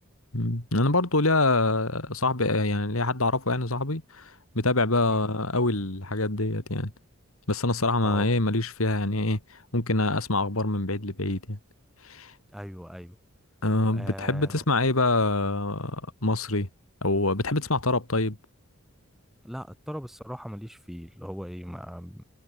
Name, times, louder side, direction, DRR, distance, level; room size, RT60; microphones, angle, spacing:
voice 1, 0.3-6.9 7.5-11.6 12.0-12.3 13.6-16.7 17.0-18.4, left 2 dB, 75° left, 3.3 m, -25 dB
voice 2, 12.5-13.2 13.9-14.5 19.4-22.2, equal, ahead, 7.5 m, -39 dB
head